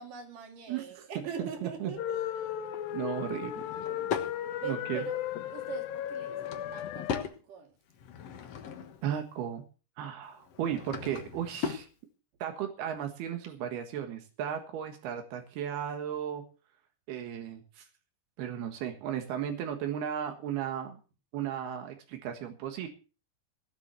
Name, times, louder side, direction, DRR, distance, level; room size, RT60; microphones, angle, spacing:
voice 1, 0.0-2.2 4.6-5.2 5.5-7.7, right 7 dB, 60° right, 3 dB, 4.3 m, -42 dB
voice 2, 0.7-1.1 1.4-1.9 2.9-3.6 4.6-5.0 9.0-9.6 10.0-11.9 12.4-16.5 17.1-17.9 18.4-21.0 21.3-22.9, right 9 dB, 85° right, 5 dB, 3.6 m, -35 dB
sound 1, 2.0-7.2, left 11 dB, 75° left, 2.5 m, -35 dB
Drawer open or close / Wood, 3.4-4.3 6.1-7.4 7.9-9.1 10.4-11.9, left 7 dB, 55° left, 1.9 m, -38 dB
17.5 x 7.5 x 6.9 m, 0.35 s
omnidirectional pair, 4.4 m